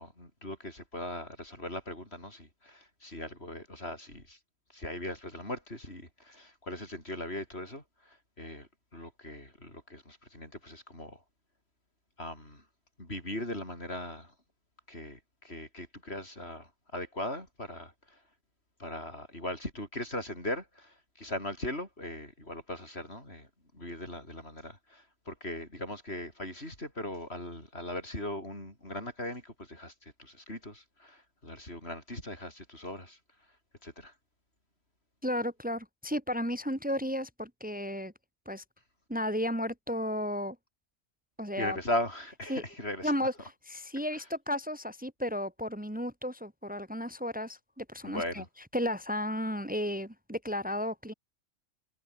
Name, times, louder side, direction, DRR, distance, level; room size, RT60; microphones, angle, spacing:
voice 1, 0.0-4.4 4.7-11.2 12.2-12.6 13.0-14.3 14.9-18.2 18.8-23.5 23.7-33.2 33.8-34.1 41.6-43.1 44.1-44.2 48.0-48.5, left 1 dB, 50° left, 8.4 m, -39 dB
voice 2, 35.2-38.1 38.5-38.6 39.1-40.6 41.4-41.8 42.5-42.6 43.0-48.4 48.7-51.1, equal, 5° right, 2.9 m, -33 dB
omnidirectional pair, 1.4 m